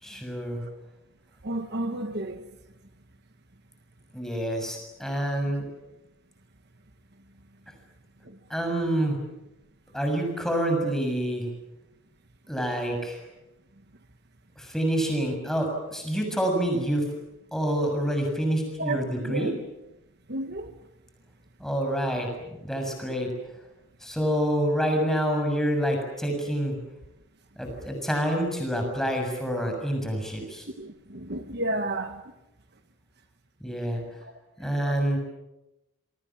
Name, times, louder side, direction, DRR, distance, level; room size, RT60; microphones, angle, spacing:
voice 1, 0.0-0.6 4.1-5.7 7.7-7.8 8.5-9.2 9.9-11.5 12.5-13.2 14.5-17.1 17.5-19.5 21.6-22.3 22.6-23.3 24.0-26.8 27.5-30.7 33.6-34.0 34.6-35.2, equal, ahead, 6.8 m, -27 dB
voice 2, 1.4-2.5 8.2-8.4 18.8-19.5 20.3-20.7 30.8-32.2 34.2-34.3 34.6-35.1, right 1 dB, 50° right, 1.4 m, -32 dB
28.0 x 23.5 x 7.4 m
head